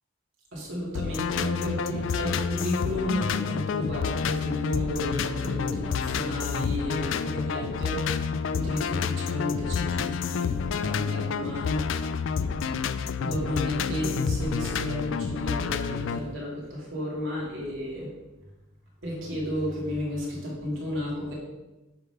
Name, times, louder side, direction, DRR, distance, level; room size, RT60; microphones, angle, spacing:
voice 1, 0.5-11.9 13.2-18.1 19.0-21.3, left 1 dB, 60° right, -5 dB, 2.4 m, -32 dB
sound 1, 0.9-16.2, left 6 dB, 60° left, 0.3 m, -29 dB
8.0 x 3.7 x 5.7 m, 1.1 s
head